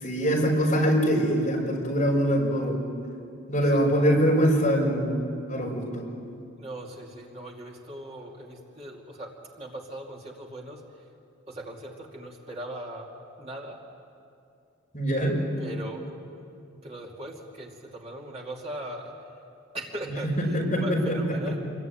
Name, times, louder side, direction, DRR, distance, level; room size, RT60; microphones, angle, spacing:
voice 1, 0.0-2.8 3.5-5.2 5.5-6.0 14.9-15.3 20.4-21.5, equal, 35° left, -2 dB, 6.0 m, -23 dB
voice 2, 6.6-10.8 11.5-13.1 13.4-13.8 15.6-16.1 16.8-19.1 19.7-21.6, right 1 dB, 30° right, -1 dB, 2.6 m, -39 dB
28.0 x 22.5 x 9.2 m, 2.5 s
head